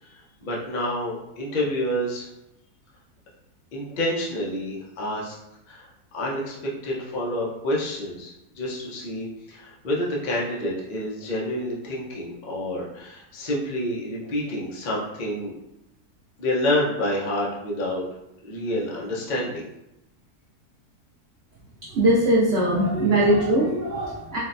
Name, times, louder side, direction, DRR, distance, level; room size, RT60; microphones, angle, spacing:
voice 1, 0.0-2.3 3.7-5.4 5.7-6.6 6.8-15.5 16.4-18.1 18.4-19.7, left 1 dB, 65° left, -4 dB, 0.4 m, -28 dB
voice 2, 21.9-24.4, right 1 dB, 65° right, -6 dB, 0.6 m, -20 dB
3.7 x 2.1 x 2.5 m, 0.86 s
omnidirectional pair, 1.7 m